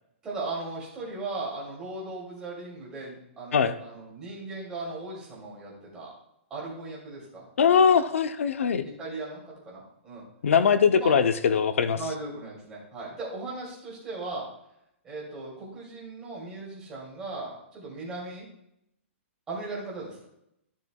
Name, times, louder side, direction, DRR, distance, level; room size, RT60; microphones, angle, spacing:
voice 1, 0.2-6.1 6.5-7.4 7.7-7.9 8.8-10.2 10.9-11.1 11.9-14.5 15.0-18.4 19.5-20.3, right 2 dB, 10° right, -5 dB, 2.5 m, -37 dB
voice 2, 7.6-8.8 10.4-12.0, left 6 dB, 90° left, 10 dB, 0.7 m, -21 dB
13.5 x 6.5 x 2.3 m, 0.78 s
hypercardioid pair, 175°, 7 cm